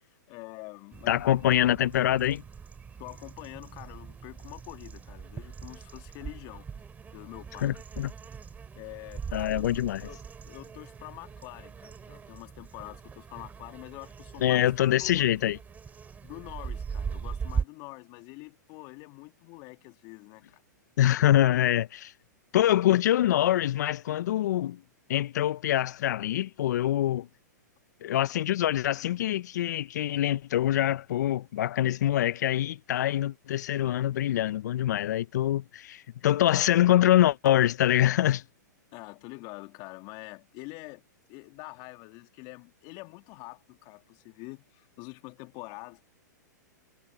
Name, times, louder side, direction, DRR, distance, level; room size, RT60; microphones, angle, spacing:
voice 1, 0.0-1.2 3.0-6.7 7.1-7.8 8.8-15.2 16.2-20.6 21.2-21.3 38.9-41.0 41.3-46.1, left 26 dB, 40° left, 2.0 m, -45 dB
sound 1, 0.9-17.6, right 6 dB, 15° right, 2.6 m, -40 dB
voice 2, 1.1-2.4 7.6-8.1 9.3-10.1 14.4-15.6 21.0-22.1 22.5-24.8 25.1-27.3 28.0-38.4, left 12 dB, 65° left, 0.6 m, -25 dB
hypercardioid pair, 115°, 10 cm